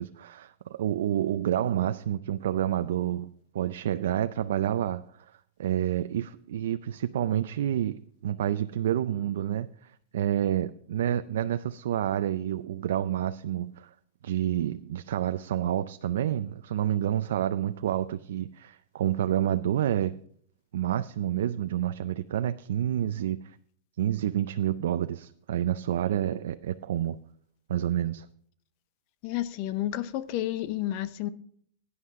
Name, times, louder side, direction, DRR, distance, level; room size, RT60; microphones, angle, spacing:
voice 1, 0.0-5.3 5.6-13.9 14.2-20.2 20.7-23.6 24.0-27.2 27.7-28.3, right 11 dB, 80° right, 0.4 m, -29 dB
voice 2, 29.2-31.3, left 13 dB, 40° left, 0.6 m, -31 dB
16.5 x 9.6 x 3.6 m
supercardioid pair, 170°, 0 cm